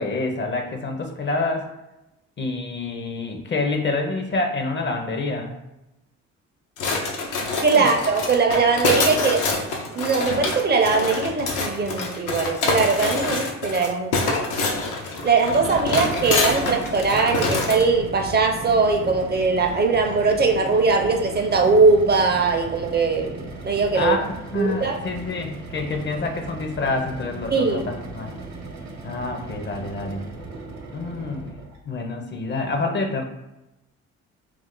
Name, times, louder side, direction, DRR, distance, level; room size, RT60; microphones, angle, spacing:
voice 1, 0.0-1.7 2.4-5.5 7.7-7.9 23.9-24.3 24.5-28.3 29.0-30.2 30.9-31.6 31.9-33.2, left 3 dB, 40° left, 4 dB, 0.5 m, -27 dB
sound 1, 6.8-17.9, left 3 dB, 85° left, 0.6 m, -26 dB
voice 2, 7.6-9.4 9.9-14.1 15.2-24.2 24.5-25.0 27.5-27.8, right 4 dB, 35° right, 3 dB, 0.5 m, -20 dB
sound 2, 15.4-31.8, right 3 dB, 65° right, 0.7 m, -36 dB
2.4 x 2.4 x 3.6 m, 0.93 s
cardioid pair, 90°, 30 cm